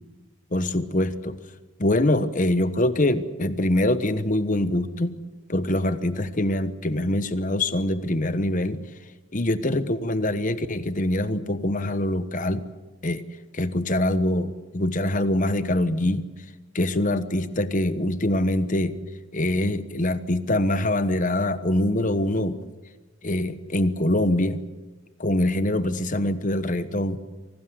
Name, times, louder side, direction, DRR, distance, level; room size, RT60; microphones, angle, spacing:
voice 1, 0.5-1.4 1.8-5.1 5.5-8.8 9.3-12.6 13.0-13.2 13.5-16.2 16.7-18.9 19.3-22.6 23.2-24.6 25.2-27.2, left 1 dB, 35° left, 12 dB, 1.2 m, -24 dB
25.5 x 19.0 x 8.0 m, 1.3 s
head